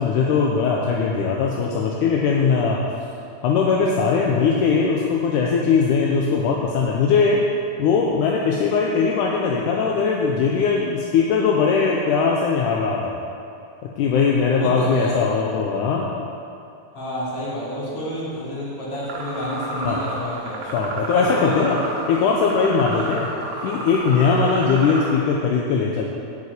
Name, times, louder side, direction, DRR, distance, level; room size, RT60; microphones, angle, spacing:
voice 1, 0.0-2.8 3.4-7.4 7.8-13.2 14.0-16.1 19.8-20.0 20.7-21.8 22.1-23.3 23.6-26.0, left 5 dB, 75° left, -2 dB, 2.0 m, -20 dB
voice 2, 14.5-15.2 16.9-20.6 21.2-21.6 22.9-23.1, equal, 40° left, -8 dB, 3.7 m, -30 dB
sound 1, 19.0-25.1, right 2 dB, 60° right, 2.3 m, -31 dB
8.5 x 7.4 x 8.2 m, 2.5 s
omnidirectional pair, 4.3 m